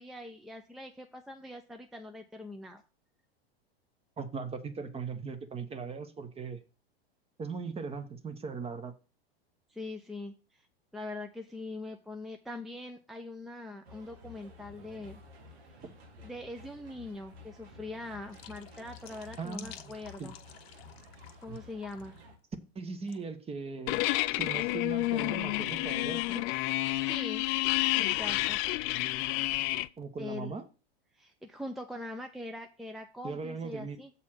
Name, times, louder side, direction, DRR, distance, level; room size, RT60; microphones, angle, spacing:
voice 1, 0.0-2.8 9.7-10.6 10.9-15.2 16.2-20.3 21.4-22.2 27.0-27.5 28.0-28.6 30.2-30.5 31.1-34.1, left 2 dB, ahead, 0.6 m, -42 dB
voice 2, 4.2-6.6 7.4-8.9 15.8-15.9 19.4-19.9 20.2-20.3 21.5-21.6 22.7-24.0 24.3-26.5 30.0-30.6 33.2-34.0, right 5 dB, 20° right, 1.0 m, -39 dB
sound 1, 13.8-22.4, left 2 dB, 85° right, 1.7 m, -53 dB
water-jet-d'eau, 18.3-21.6 21.8-22.2 23.1-23.2, left 11 dB, 75° left, 1.0 m, -52 dB
sound 2, 23.9-29.9, left 19 dB, 45° left, 0.4 m, -30 dB
7.3 x 4.1 x 6.3 m
hypercardioid pair, 105°, 31 cm